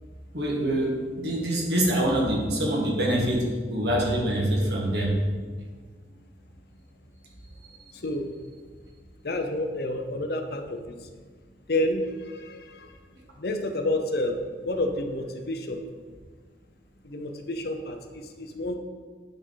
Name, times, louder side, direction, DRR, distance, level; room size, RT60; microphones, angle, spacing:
voice 1, 0.3-5.1, right 1 dB, 65° right, -1 dB, 1.5 m, -25 dB
voice 2, 7.9-8.3 9.2-11.1 11.7-13.0 13.4-15.9 17.0-18.8, left 1 dB, 55° left, 5 dB, 0.6 m, -30 dB
8.8 x 4.8 x 3.8 m, 1.5 s
head